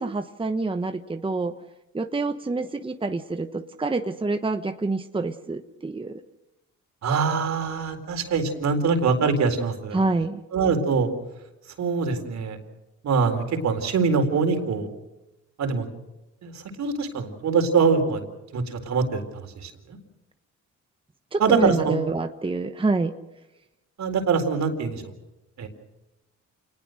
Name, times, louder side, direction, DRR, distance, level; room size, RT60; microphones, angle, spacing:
voice 1, 0.0-1.6 1.9-6.2 9.9-10.4 21.3-23.1, right 3 dB, 15° right, 8 dB, 1.1 m, -27 dB
voice 2, 7.0-10.0 10.5-11.1 11.8-12.6 13.0-14.9 15.6-15.9 16.4-16.5 16.8-18.2 18.5-20.0 21.4-22.0 24.0-25.0 25.6-25.7, right 5 dB, 65° right, 6 dB, 4.1 m, -23 dB
28.0 x 20.0 x 6.5 m, 0.97 s
cardioid pair, 90°, 30 cm